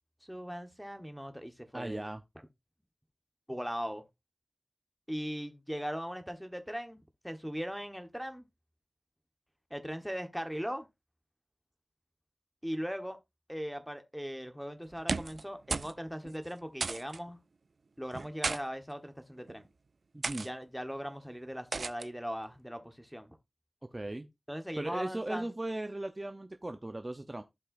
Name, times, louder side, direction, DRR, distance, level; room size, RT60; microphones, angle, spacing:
voice 1, 0.2-2.1 3.5-4.0 5.1-8.4 9.7-10.9 12.6-13.2 13.5-17.4 18.0-19.7 20.4-23.4 24.5-25.5, equal, ahead, 1.3 m, -39 dB
voice 2, 1.7-2.2 20.1-20.5 23.8-24.3 24.8-27.4, right 1 dB, 25° right, 0.7 m, -37 dB
sound 1, 14.9-15.4 15.7-16.0 16.2-16.4 16.8-17.2 18.1-18.6 19.4-19.6 20.2-20.5 21.7-22.1, right 4 dB, 75° right, 0.4 m, -34 dB
15.0 x 5.5 x 2.6 m
wide cardioid pair, 75°, 0 cm